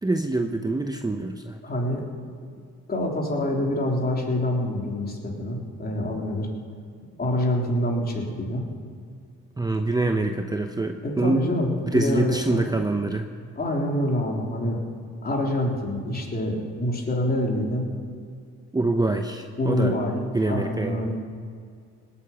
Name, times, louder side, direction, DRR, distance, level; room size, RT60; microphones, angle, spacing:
voice 1, 0.0-1.6 9.6-11.5 11.9-13.2 18.7-19.9 20.3-21.0, right 2 dB, 15° right, 5 dB, 0.9 m, -25 dB
voice 2, 1.6-2.0 2.9-6.5 7.2-8.6 11.0-12.7 13.6-14.8 15.2-17.9 19.6-21.1, left 1 dB, 30° left, 0 dB, 3.6 m, -26 dB
19.0 x 8.6 x 8.9 m, 2.2 s
cardioid pair, 90°, 30 cm